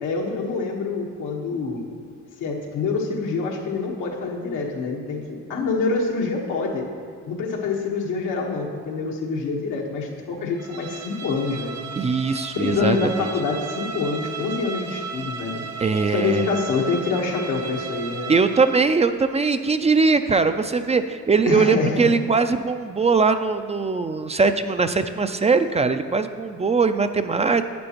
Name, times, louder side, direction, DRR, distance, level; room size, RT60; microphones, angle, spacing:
voice 1, 0.0-1.9 2.4-6.9 7.3-11.7 12.5-15.7 16.1-18.3 21.5-22.1, left 4 dB, 90° left, -1 dB, 1.4 m, -26 dB
Bowed string instrument, 10.6-18.9, right 5 dB, 70° right, 1.0 m, -35 dB
voice 2, 12.0-13.0 15.8-16.4 18.3-27.6, right 4 dB, 20° right, 9 dB, 0.4 m, -21 dB
11.5 x 8.5 x 3.0 m, 2.2 s
cardioid pair, 90°, 30 cm